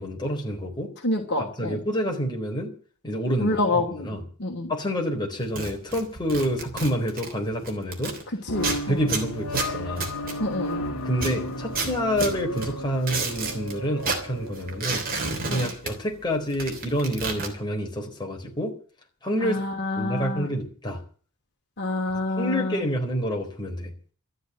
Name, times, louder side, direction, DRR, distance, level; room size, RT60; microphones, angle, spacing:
voice 1, 0.0-0.9 1.4-2.7 3.0-4.2 4.7-8.1 8.9-10.1 11.0-15.0 15.5-18.7 19.2-19.6 20.0-21.0 22.4-23.9, equal, 20° left, 0 dB, 4.0 m, -28 dB
voice 2, 1.0-1.8 3.4-4.1 4.4-4.7 8.5-9.0 10.4-10.8 15.5-15.7 19.4-20.5 21.8-22.8, left 2 dB, 50° left, 2 dB, 2.8 m, -27 dB
sound 1, 5.4-8.2 8.6-10.8 11.1-13.7 14.0-16.2 16.5-17.5, right 4 dB, 40° right, 3.3 m, -31 dB
sound 2, 8.5-15.8, left 1 dB, 80° left, 1.7 m, -34 dB
13.5 x 9.6 x 9.3 m, 0.43 s
head